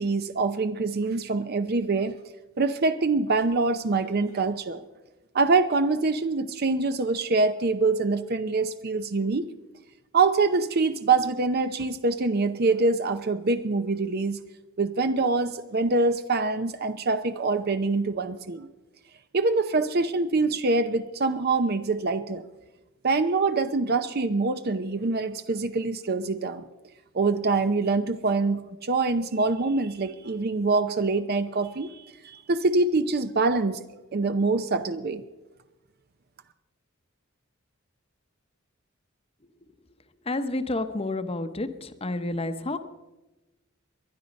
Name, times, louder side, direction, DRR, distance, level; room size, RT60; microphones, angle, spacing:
voice 1, 0.0-2.1 2.6-4.8 5.3-9.5 10.1-14.4 14.8-18.7 19.3-22.4 23.0-26.6 27.1-33.8 34.1-35.2, right 3 dB, 50° right, 10 dB, 0.6 m, -25 dB
voice 2, 40.3-42.8, left 2 dB, 30° left, 9 dB, 0.9 m, -30 dB
19.5 x 11.5 x 5.2 m, 1.1 s
head